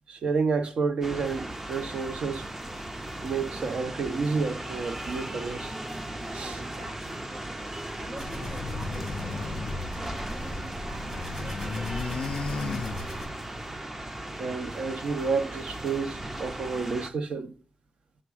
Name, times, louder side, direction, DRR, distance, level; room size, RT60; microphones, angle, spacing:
voice 1, 0.1-2.5 3.2-5.7 6.3-6.6 14.4-17.5, right 4 dB, 65° right, 0.6 m, -30 dB
sound 1, 1.0-17.1, right 1 dB, 15° right, 0.4 m, -37 dB
voice 2, 6.6-7.3 8.0-12.2, right 1 dB, 90° right, 1.5 m, -47 dB
sound 2, 8.1-13.2, equal, 35° right, 3.3 m, -38 dB
sound 3, 8.2-10.7 11.0-13.5, left 4 dB, 65° left, 0.4 m, -36 dB
5.9 x 3.8 x 4.8 m
wide cardioid pair, 130°, 2 cm